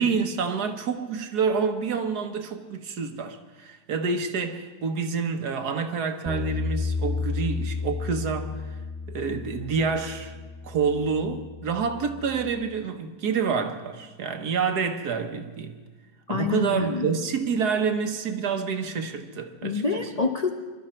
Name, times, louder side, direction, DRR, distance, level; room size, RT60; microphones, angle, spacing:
voice 1, 0.0-8.6 9.1-10.3 10.6-15.7 16.3-19.8, right 5 dB, 70° right, 1.5 m, -28 dB
Bass guitar, 6.3-12.5, left 4 dB, 5° right, 0.7 m, -32 dB
voice 2, 16.3-17.1 19.6-20.5, left 4 dB, 50° left, 0.4 m, -27 dB
23.0 x 12.5 x 4.3 m
omnidirectional pair, 1.9 m